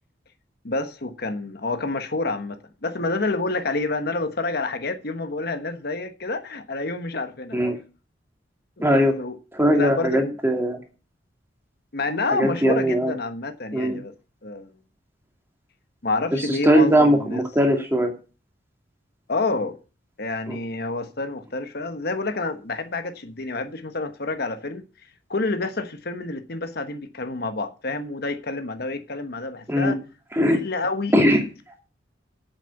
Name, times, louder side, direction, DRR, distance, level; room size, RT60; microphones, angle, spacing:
voice 1, 0.6-7.6 8.8-9.4 9.7-10.3 11.9-14.1 14.4-14.7 16.0-17.4 19.3-19.8 20.2-24.8 25.3-30.0 30.4-31.3, left 3 dB, 60° left, 1.3 m, -28 dB
voice 2, 8.8-9.1 9.5-10.8 12.3-13.1 13.7-14.0 16.6-18.1 20.5-20.6 29.7-29.9 30.4-30.6 31.1-31.4, equal, 15° right, 2.5 m, -19 dB
8.3 x 7.5 x 8.3 m
head